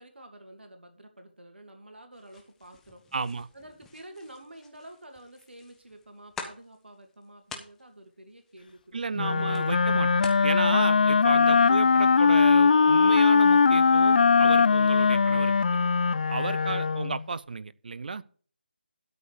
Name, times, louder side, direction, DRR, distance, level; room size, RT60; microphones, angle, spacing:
voice 1, 0.0-3.0 3.5-9.1 11.0-11.7 16.6-16.9, right 1 dB, 85° right, 2.8 m, -49 dB
sound 1, 2.1-10.5, left 5 dB, 5° left, 0.9 m, -48 dB
voice 2, 3.1-3.5 8.9-15.9 16.3-18.2, right 4 dB, 55° right, 0.7 m, -33 dB
Wind instrument woodwind instrument, 9.2-17.2, left 5 dB, 55° left, 0.4 m, -21 dB
12.5 x 5.1 x 6.7 m
figure-of-eight pair, 160°, 6 cm